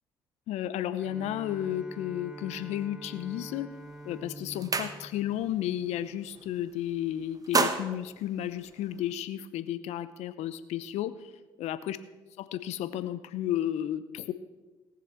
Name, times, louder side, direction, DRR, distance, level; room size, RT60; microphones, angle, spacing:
voice 1, 0.5-3.7 4.0-11.3 11.6-12.0 12.4-14.3, left 12 dB, 70° left, 14 dB, 0.8 m, -33 dB
Bowed string instrument, 1.0-6.3, right 1 dB, 5° right, 1.7 m, -46 dB
sound 1, 3.7-3.9 4.3-5.4 5.8-6.0 6.3-6.9 7.2-9.1, right 4 dB, 30° right, 1.4 m, -31 dB
18.5 x 6.7 x 5.8 m, 1.2 s
hypercardioid pair, 55°, 12 cm